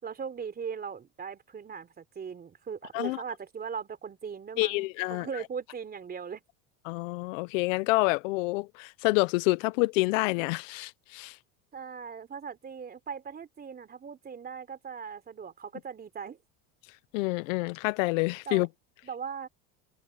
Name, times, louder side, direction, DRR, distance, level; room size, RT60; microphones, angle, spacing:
voice 1, 0.0-6.4 11.7-16.4 18.5-18.7 19.0-19.5, right 6 dB, 25° right, 3.6 m, -39 dB
voice 2, 4.6-5.3 6.9-11.4 17.1-18.7, left 23 dB, 80° left, 0.8 m, -28 dB
supercardioid pair, 130°, 38 cm